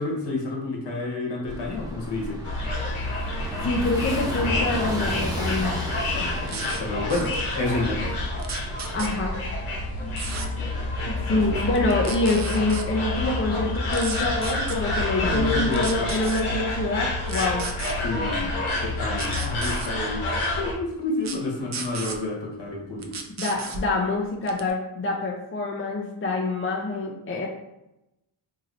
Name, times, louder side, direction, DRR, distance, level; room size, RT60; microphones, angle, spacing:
voice 1, 0.0-2.4 6.1-8.2 11.3-11.6 15.2-16.0 18.0-18.5 18.8-23.1, left 2 dB, 55° left, -1 dB, 1.2 m, -30 dB
Car passing by / Engine, 1.5-9.4, equal, 5° right, 1.0 m, -34 dB
sound 1, 2.4-20.7, left 2 dB, 75° left, 1.1 m, -28 dB
voice 2, 3.6-5.8 8.9-9.4 11.0-17.6 23.4-27.5, left 2 dB, 25° left, -1 dB, 0.6 m, -26 dB
sound 2, 6.5-6.8 7.1-7.4 8.4-9.1 10.2-10.5 11.8-12.9 13.9-14.8 15.7-16.4 17.3-18.0 19.1-19.9 21.2-21.4 21.7-22.2 23.0-23.8 24.5-24.7, right 5 dB, 35° right, 0.5 m, -34 dB
2.9 x 2.8 x 2.6 m, 0.91 s
supercardioid pair, 50°, 49 cm